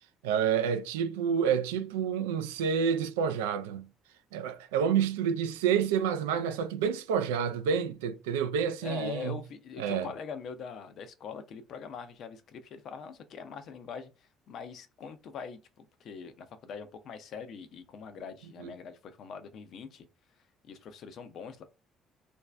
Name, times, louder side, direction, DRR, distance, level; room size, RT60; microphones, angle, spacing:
voice 1, 0.2-3.9 4.3-9.4 9.8-10.1 18.6-18.7, right 7 dB, 85° right, 0.3 m, -29 dB
voice 2, 8.8-20.1 20.6-21.6, left 6 dB, 60° left, 0.5 m, -42 dB
2.5 x 2.2 x 3.2 m
hypercardioid pair, 55°, 0 cm